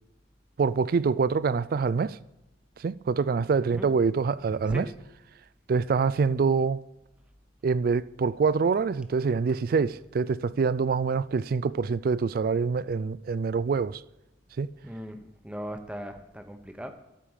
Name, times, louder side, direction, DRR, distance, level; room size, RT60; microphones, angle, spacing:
voice 1, 0.6-2.2 2.8-4.9 5.7-6.8 7.6-14.0 14.6-14.7, right 5 dB, 50° right, 0.3 m, -25 dB
voice 2, 14.8-16.9, equal, 5° right, 0.8 m, -38 dB
12.5 x 5.0 x 7.3 m
head